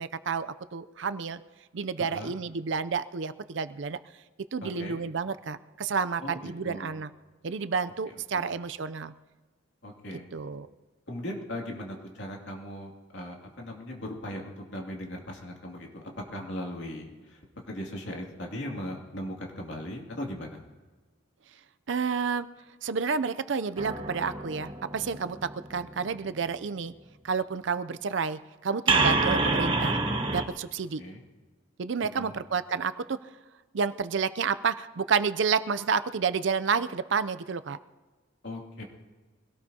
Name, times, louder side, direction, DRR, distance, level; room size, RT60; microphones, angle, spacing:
voice 1, 0.0-1.4 1.7-4.0 4.5-7.1 7.4-9.1 10.3-10.7 21.9-22.5 22.8-26.9 27.2-30.0 30.3-31.0 31.8-33.2 33.7-37.8, right 5 dB, 65° right, 13 dB, 0.5 m, -30 dB
voice 2, 2.0-2.3 4.6-5.0 6.2-7.0 8.3-8.5 9.8-10.3 11.1-16.0 16.3-17.4 17.7-20.6 31.0-31.2 32.0-32.4 38.4-38.8, left 1 dB, 65° left, 0 dB, 2.6 m, -38 dB
sound 1, 23.8-25.8 28.9-30.4, right 3 dB, 25° right, 1.1 m, -27 dB
24.0 x 17.5 x 2.8 m, 1.3 s
head